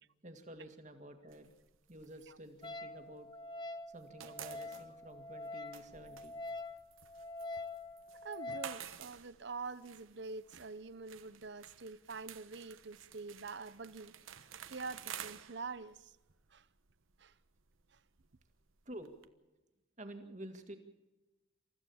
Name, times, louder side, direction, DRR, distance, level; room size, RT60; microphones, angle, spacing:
voice 1, 0.2-1.5 1.9-3.3 3.9-6.3 18.9-19.1 20.0-20.8, right 1 dB, 35° right, 2.0 m, -50 dB
sound 1, 1.3-3.5 3.8-19.3, right 9 dB, 85° right, 1.1 m, -53 dB
Wind instrument woodwind instrument, 2.6-8.8, left 2 dB, 25° left, 0.8 m, -45 dB
voice 2, 8.2-14.1 14.7-16.1 16.5-16.7 17.2-17.3 17.9-18.0, right 4 dB, 60° right, 0.7 m, -46 dB
28.0 x 14.5 x 7.2 m
head